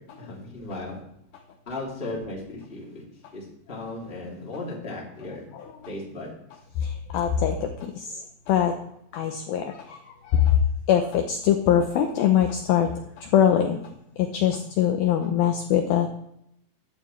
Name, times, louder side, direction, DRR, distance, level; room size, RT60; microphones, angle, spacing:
voice 1, 0.2-1.0 1.7-3.0 3.3-5.4 5.9-6.3, left 2 dB, 15° left, -4 dB, 2.2 m, -36 dB
voice 2, 6.8-7.7 8.0-8.2 8.5-8.7 9.1-10.0 10.3-10.6 10.9-12.9 13.2-13.8 14.2-16.1, left 9 dB, 75° left, 4 dB, 2.3 m, -22 dB
13.5 x 11.5 x 3.2 m, 0.76 s
omnidirectional pair, 4.9 m